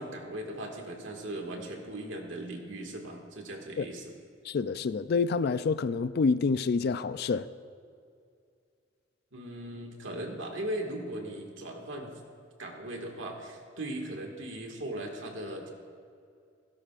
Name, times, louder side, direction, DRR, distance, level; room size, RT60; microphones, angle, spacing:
voice 1, 0.0-4.1 9.3-12.1 12.6-15.7, right 1 dB, 80° right, 1 dB, 1.9 m, -38 dB
voice 2, 4.5-7.5, left 4 dB, 55° left, 14 dB, 0.4 m, -27 dB
17.0 x 16.0 x 2.5 m, 2.3 s
head